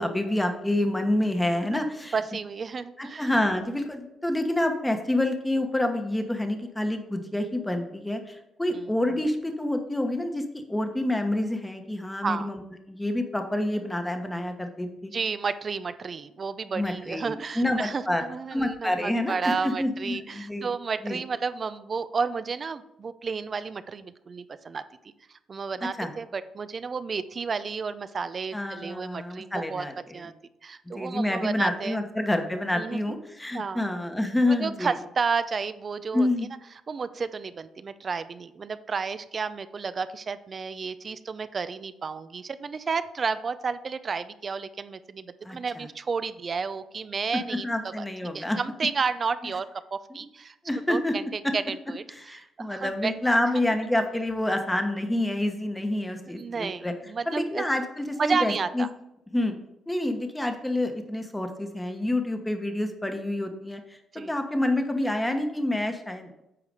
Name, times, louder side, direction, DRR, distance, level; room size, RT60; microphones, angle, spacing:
voice 1, 0.0-2.2 3.0-12.6 12.9-15.1 16.7-18.2 18.5-20.7 21.0-21.2 25.8-26.1 28.5-30.3 30.9-34.9 36.1-36.5 45.4-45.9 47.3-48.6 50.1-50.2 50.6-51.1 51.4-51.5 52.1-56.9 57.3-58.8 59.3-59.5 59.9-64.0 64.3-66.4, left 1 dB, 10° left, 6 dB, 1.1 m, -28 dB
voice 2, 2.1-3.3 8.7-8.9 12.2-12.5 15.1-24.8 25.5-29.9 30.1-30.3 30.6-32.0 32.7-33.0 33.5-33.8 34.6-36.3 36.9-47.7 48.0-48.1 48.3-50.5 50.9-52.0 52.6-53.1 56.3-57.6 58.2-58.9 64.1-64.4, right 5 dB, 40° right, 13 dB, 0.5 m, -31 dB
8.6 x 4.8 x 5.2 m, 0.87 s
cardioid pair, 90°, 0 cm